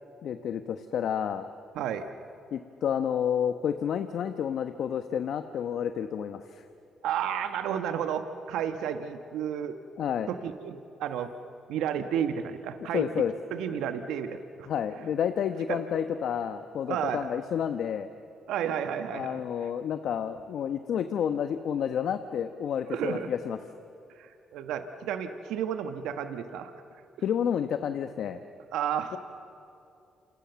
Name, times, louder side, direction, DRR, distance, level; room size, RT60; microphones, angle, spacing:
voice 1, 0.2-1.5 2.5-6.6 10.0-10.3 12.9-13.3 14.7-18.1 19.1-23.6 27.2-28.4, left 8 dB, 70° left, 8 dB, 1.1 m, -30 dB
voice 2, 1.7-2.1 7.0-9.8 10.3-11.3 11.7-13.0 13.5-14.7 15.7-15.8 16.9-17.3 18.5-19.4 22.9-23.3 24.2-26.7 28.7-29.2, right 8 dB, 80° right, 7 dB, 1.4 m, -32 dB
28.5 x 27.5 x 7.1 m, 2.6 s
supercardioid pair, 55°, 0 cm